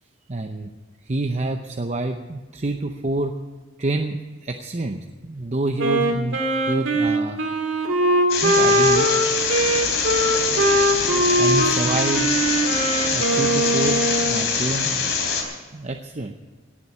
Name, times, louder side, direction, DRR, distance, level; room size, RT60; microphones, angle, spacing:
voice 1, 0.3-0.7 1.0-3.3 3.8-6.4 6.7-7.4 8.4-9.1 11.4-12.3 13.1-15.1 15.7-16.3, right 2 dB, 35° right, 5 dB, 0.7 m, -27 dB
Wind instrument woodwind instrument, 5.8-14.4, right 1 dB, 65° right, 2.4 m, -21 dB
sound 1, 8.3-15.4, left 5 dB, 60° left, 3.6 m, -24 dB
18.0 x 7.5 x 8.7 m, 1.4 s
head